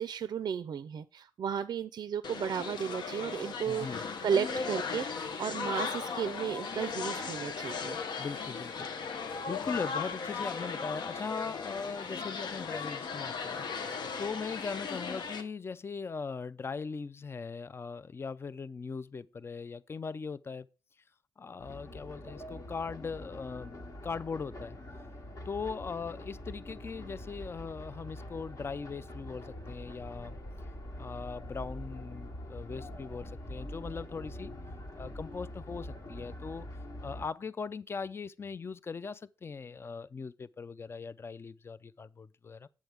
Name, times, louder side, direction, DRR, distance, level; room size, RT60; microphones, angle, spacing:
voice 1, 0.0-8.0, right 7 dB, 65° right, 0.4 m, -34 dB
sound 1, 2.2-15.4, left 5 dB, 80° left, 0.8 m, -37 dB
voice 2, 3.7-4.0 8.2-8.9 9.5-13.6 14.2-20.7 21.4-24.8 25.5-30.4 31.0-34.5 35.0-36.7 37.0-42.7, left 5 dB, 35° left, 0.3 m, -40 dB
sound 2, 21.6-37.3, left 1 dB, 50° left, 1.4 m, -44 dB
7.8 x 7.2 x 3.4 m
cardioid pair, 75°, 7 cm